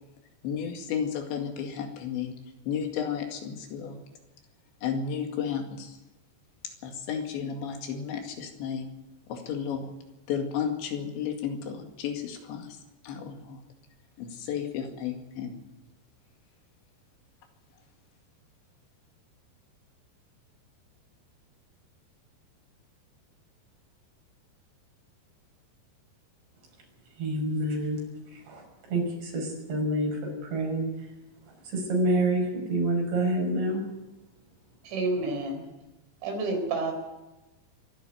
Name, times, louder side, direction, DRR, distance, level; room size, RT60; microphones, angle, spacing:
voice 1, 0.4-2.3 2.7-4.0 4.8-6.0 6.8-8.9 9.3-9.9 10.3-12.8 13.0-13.6 14.2-15.6, left 7 dB, 80° left, 4 dB, 4.4 m, -33 dB
voice 2, 27.2-28.0 28.3-28.6 28.9-30.9 31.7-33.8, right 1 dB, 70° right, 1 dB, 8.4 m, -27 dB
voice 3, 34.8-35.6 36.2-36.9, right 2 dB, 90° right, 4 dB, 6.8 m, -29 dB
23.5 x 12.0 x 9.2 m, 1.0 s
omnidirectional pair, 5.1 m